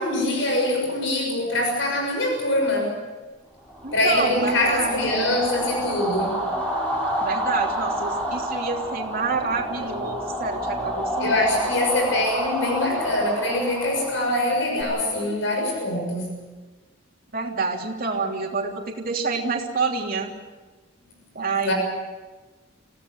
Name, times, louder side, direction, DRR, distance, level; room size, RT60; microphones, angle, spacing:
voice 1, 0.0-3.0 3.9-6.4 11.2-16.4 21.6-21.7, left 1 dB, 75° left, 2 dB, 6.5 m, -24 dB
sound 1, 3.7-14.8, equal, 10° left, 7.0 m, -29 dB
voice 2, 3.8-5.3 7.2-11.5 17.3-20.3 21.3-21.7, right 4 dB, 50° right, 0 dB, 3.1 m, -28 dB
25.5 x 17.0 x 7.8 m, 1.3 s
head